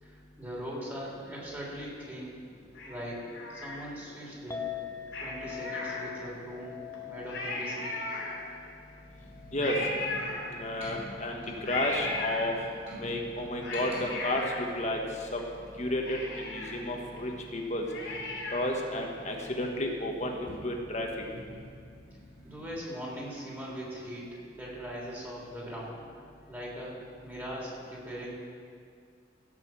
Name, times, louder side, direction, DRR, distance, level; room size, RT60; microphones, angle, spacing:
voice 1, 0.0-2.4 2.8-4.7 5.2-6.8 7.0-7.9 22.4-28.4, equal, 10° right, -5 dB, 3.1 m, -40 dB
Cat, 2.7-4.2 5.1-6.5 6.9-7.0 7.2-8.7 9.6-10.9 11.6-12.9 13.4-15.4 15.7-15.8 16.1-18.8 19.2-19.3, left 2 dB, 85° left, 3.3 m, -37 dB
Chink clink, 4.5-10.8, left 9 dB, 15° left, 0.8 m, -43 dB
sound 1, 9.0-22.7, equal, 30° right, 3.7 m, -49 dB
voice 2, 9.5-9.9 10.4-12.7 13.0-15.5 15.7-18.2 18.5-21.2, left 1 dB, 35° left, 1 dB, 1.5 m, -32 dB
15.5 x 6.2 x 7.5 m, 2.2 s
head